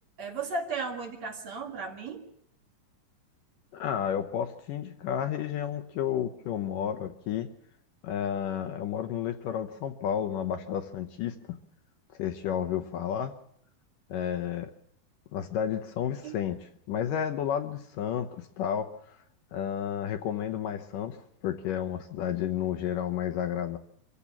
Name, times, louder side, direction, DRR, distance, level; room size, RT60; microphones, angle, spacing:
voice 1, 0.2-2.2 16.2-16.4, right 4 dB, 50° right, 4 dB, 2.8 m, -35 dB
voice 2, 3.7-7.5 8.0-11.6 12.2-13.3 14.1-14.7 15.3-19.2 19.5-21.2 21.4-23.8, left 9 dB, 70° left, 6 dB, 2.3 m, -31 dB
26.0 x 15.5 x 7.3 m, 0.70 s
omnidirectional pair, 4.5 m